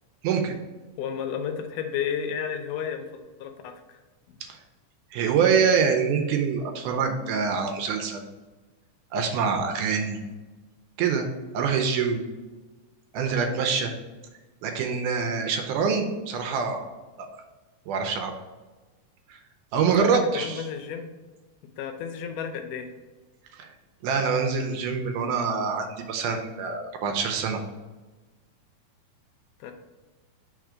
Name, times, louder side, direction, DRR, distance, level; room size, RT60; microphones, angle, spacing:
voice 1, 1.0-4.0 20.0-21.1 21.8-22.9 29.6-29.7, left 7 dB, 80° left, 6 dB, 2.1 m, -32 dB
voice 2, 5.1-8.2 9.1-10.2 11.0-11.3 11.5-12.2 13.1-13.9 14.6-16.8 17.2-17.3 17.9-18.3 19.3-19.4 19.7-20.7 23.6-23.7 24.0-27.6, right 6 dB, 80° right, 4 dB, 2.1 m, -25 dB
4.5 x 4.2 x 4.9 m, 1.2 s
omnidirectional pair, 3.8 m